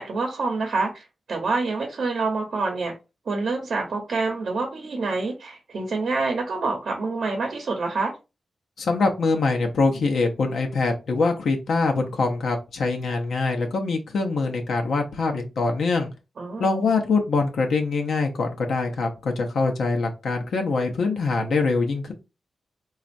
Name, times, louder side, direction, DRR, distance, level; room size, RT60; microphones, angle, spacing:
voice 1, 0.0-2.9 3.3-8.1 16.4-16.7, right 3 dB, 55° right, 2 dB, 0.8 m, -27 dB
voice 2, 8.8-16.1 16.6-22.1, left 3 dB, 80° left, 3 dB, 0.7 m, -24 dB
4.2 x 2.4 x 2.5 m, 0.28 s
wide cardioid pair, 155°, 0 cm